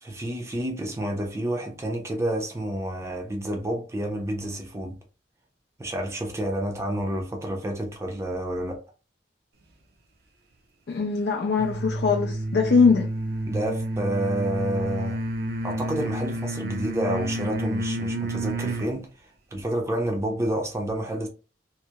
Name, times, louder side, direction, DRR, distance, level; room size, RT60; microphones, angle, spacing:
voice 1, 0.0-5.0 5.8-8.8 13.5-15.2 15.6-19.1 19.5-21.3, right 1 dB, 15° right, 0.5 m, -29 dB
voice 2, 10.9-13.1, left 5 dB, 65° left, 0.4 m, -21 dB
sound 1, 11.6-19.0, right 1 dB, 65° right, 0.5 m, -30 dB
2.8 x 2.0 x 2.2 m
head